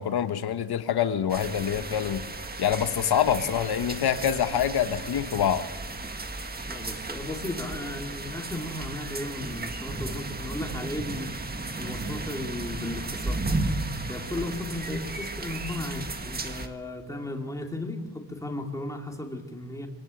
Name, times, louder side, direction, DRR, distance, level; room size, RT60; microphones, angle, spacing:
voice 1, 0.0-2.3 2.6-5.7, left 9 dB, 70° left, 10 dB, 1.2 m, -26 dB
sound 1, 1.3-16.7, right 2 dB, 25° right, 1.7 m, -34 dB
voice 2, 6.7-11.4 11.8-13.6 14.1-19.9, left 1 dB, 10° left, 2 dB, 2.6 m, -35 dB
25.5 x 18.5 x 9.1 m, 1.2 s
wide cardioid pair, 180°, 39 cm